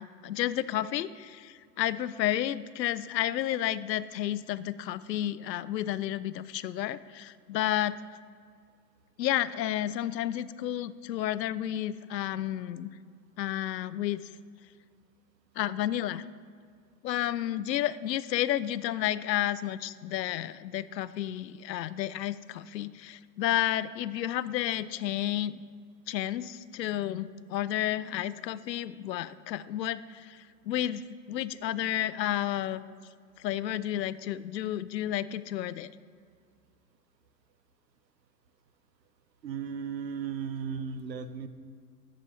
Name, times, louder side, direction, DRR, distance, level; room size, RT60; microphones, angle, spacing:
voice 1, 0.0-8.0 9.2-12.9 13.4-14.3 15.6-16.2 17.0-25.6 26.1-32.9 33.4-35.9, left 12 dB, 85° left, 16 dB, 0.6 m, -31 dB
voice 2, 39.4-41.5, right 6 dB, 90° right, 11 dB, 0.8 m, -35 dB
13.0 x 5.2 x 4.2 m, 2.1 s
hypercardioid pair, 110°, 49 cm